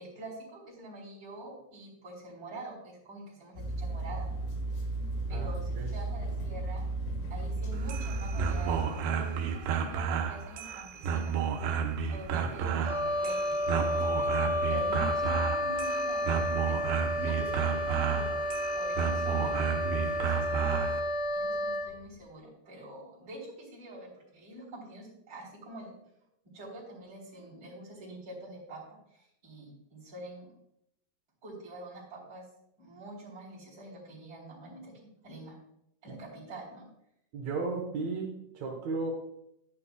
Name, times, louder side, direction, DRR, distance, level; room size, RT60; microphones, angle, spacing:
voice 1, 0.0-4.3 5.3-6.8 7.3-11.4 12.1-16.8 17.2-18.4 18.7-25.9 26.5-30.5 31.4-32.4 32.8-34.9 35.2-35.6 36.0-36.9, right 1 dB, 30° right, -5 dB, 3.7 m, -46 dB
sound 1, 3.6-8.8, right 2 dB, 85° left, 3.9 m, -34 dB
voice 2, 5.3-5.9 12.4-12.8 37.3-39.1, right 3 dB, 70° right, 0 dB, 1.6 m, -35 dB
sound 2, 7.7-21.0, right 7 dB, 90° right, 2.9 m, -32 dB
Wind instrument woodwind instrument, 12.8-21.9, left 1 dB, 40° left, 2.7 m, -31 dB
11.5 x 9.9 x 2.3 m, 0.78 s
omnidirectional pair, 4.8 m